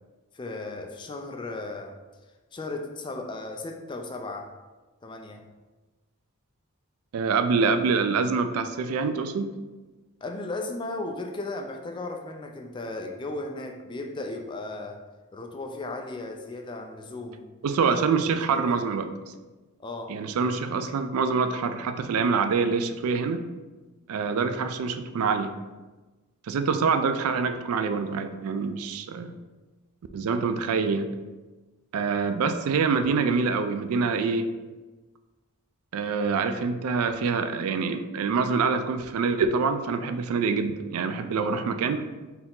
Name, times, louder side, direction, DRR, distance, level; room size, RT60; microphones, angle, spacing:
voice 1, 0.3-2.0 2.5-4.5 5.0-5.5 10.2-15.0 15.3-17.4 18.2-18.9 19.8-20.1, left 2 dB, 20° left, 3 dB, 0.3 m, -36 dB
voice 2, 7.1-9.5 17.6-19.1 20.1-23.4 24.1-25.5 26.5-29.3 30.1-31.1 31.9-34.5 35.9-42.1, right 5 dB, 75° right, 9 dB, 0.3 m, -25 dB
4.3 x 2.8 x 3.8 m, 1.2 s
head